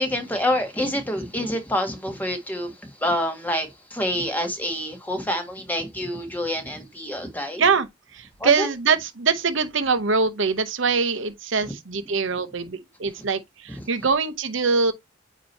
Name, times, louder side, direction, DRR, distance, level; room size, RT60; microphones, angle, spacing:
voice 1, 0.0-7.6 8.4-8.7 11.7-11.8 13.7-13.8, left 1 dB, 10° left, 1.6 m, -27 dB
voice 2, 8.1-14.9, right 4 dB, 70° right, 0.8 m, -23 dB
8.8 x 3.0 x 4.1 m
head